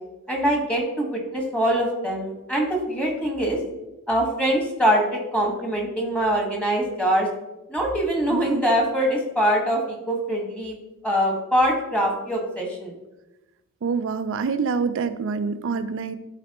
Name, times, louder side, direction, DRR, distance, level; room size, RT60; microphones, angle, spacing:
voice 1, 0.3-3.6 4.1-7.3 7.7-9.8 10.1-10.7 11.0-12.9, equal, 5° left, 0 dB, 1.5 m, -23 dB
voice 2, 8.3-8.6 13.8-16.1, right 5 dB, 65° right, 11 dB, 0.4 m, -26 dB
12.0 x 4.1 x 3.0 m, 1.0 s
head